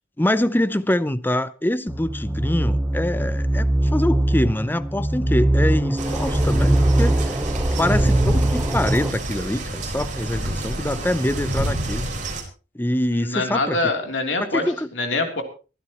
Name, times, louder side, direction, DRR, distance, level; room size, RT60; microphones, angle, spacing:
voice 1, 0.2-7.4 7.8-12.1 12.7-13.8 14.4-14.9, left 1 dB, 10° left, 0.7 m, -24 dB
sound 1, 1.9-9.1, right 1 dB, 10° right, 0.9 m, -21 dB
sound 2, 6.0-12.4, right 1 dB, 45° right, 4.5 m, -28 dB
voice 2, 13.1-14.6 14.9-15.4, left 3 dB, 80° left, 3.2 m, -24 dB
23.5 x 13.0 x 3.0 m
head